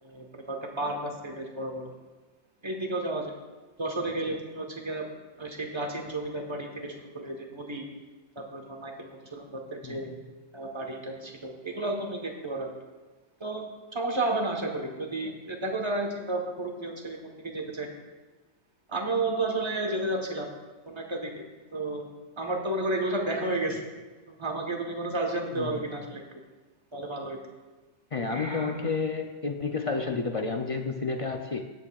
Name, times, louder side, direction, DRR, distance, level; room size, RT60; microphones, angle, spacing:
voice 1, 0.0-1.9 2.6-3.3 3.8-5.1 5.4-7.9 8.5-10.2 10.5-12.7 13.4-13.7 13.9-17.9 18.9-20.5 20.9-21.4 21.7-22.1 22.4-23.8 24.4-26.3 26.9-27.4 28.3-28.9, right 2 dB, 25° right, 2 dB, 1.1 m, -32 dB
voice 2, 28.1-31.6, left 4 dB, 60° left, 4 dB, 0.3 m, -30 dB
17.0 x 7.6 x 2.4 m, 1.2 s
omnidirectional pair, 1.2 m